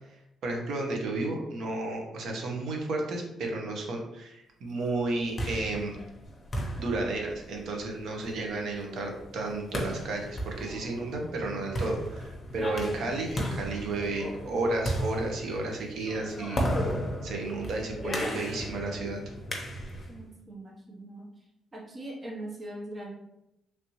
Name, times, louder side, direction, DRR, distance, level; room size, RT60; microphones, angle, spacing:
voice 1, 0.4-6.0 6.8-16.9 17.2-19.2, right 2 dB, 70° right, 1 dB, 0.8 m, -32 dB
sound 1, 5.0-20.2, equal, 30° left, 0.8 m, -35 dB
voice 2, 20.1-21.3 21.7-23.1, right 1 dB, 30° right, -2 dB, 0.8 m, -41 dB
3.3 x 2.7 x 3.0 m, 0.87 s
cardioid pair, 90°, 0 cm